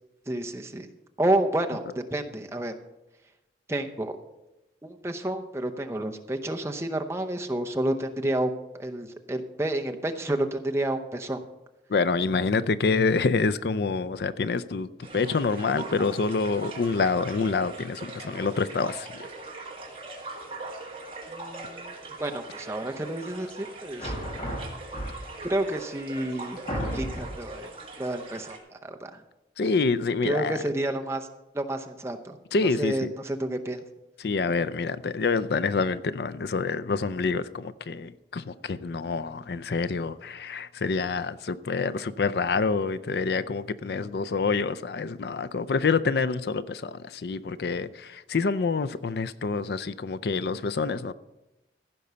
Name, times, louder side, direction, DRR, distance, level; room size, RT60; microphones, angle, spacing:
voice 1, 0.3-0.9 1.2-2.7 3.7-4.2 4.8-8.5 8.8-11.4 21.3-24.1 25.4-26.6 26.9-27.7 28.0-29.2 30.2-31.3 31.5-32.4 32.8-33.8, right 1 dB, 15° right, 0.7 m, -30 dB
voice 2, 11.9-19.2 29.6-30.6 32.5-33.1 34.2-51.1, left 4 dB, 65° left, 0.4 m, -27 dB
sound 1, 15.0-28.6, right 3 dB, 30° right, 1.9 m, -41 dB
sound 2, 24.0-25.5 26.1-26.2 26.7-27.5, equal, 35° left, 1.8 m, -33 dB
15.5 x 5.4 x 6.8 m
head